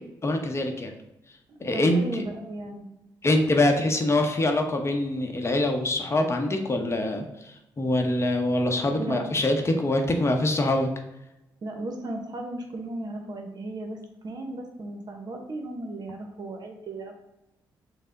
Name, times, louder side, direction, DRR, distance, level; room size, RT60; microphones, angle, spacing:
voice 1, 0.2-0.9 1.6-2.2 3.2-10.9, left 1 dB, 30° left, 4 dB, 0.7 m, -24 dB
voice 2, 1.5-2.9 9.0-9.2 11.6-17.1, right 2 dB, 55° right, 3 dB, 0.8 m, -36 dB
5.4 x 2.1 x 3.7 m, 0.89 s
supercardioid pair, 65°, 8 cm